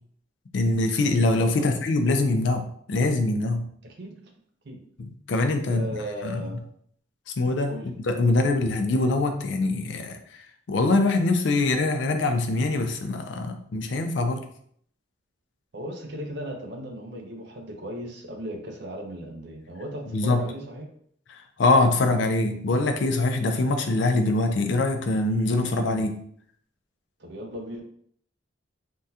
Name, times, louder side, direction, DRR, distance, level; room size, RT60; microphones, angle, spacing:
voice 1, 0.5-3.7 5.0-5.9 6.2-6.5 7.4-10.2 10.7-14.4 20.1-20.4 21.3-26.2, left 2 dB, 70° left, 6 dB, 0.4 m, -23 dB
voice 2, 3.8-4.3 4.6-4.8 5.7-6.6 7.7-7.9 15.7-20.9 27.2-27.8, equal, 60° right, 3 dB, 0.6 m, -37 dB
3.5 x 2.2 x 2.7 m, 0.64 s
head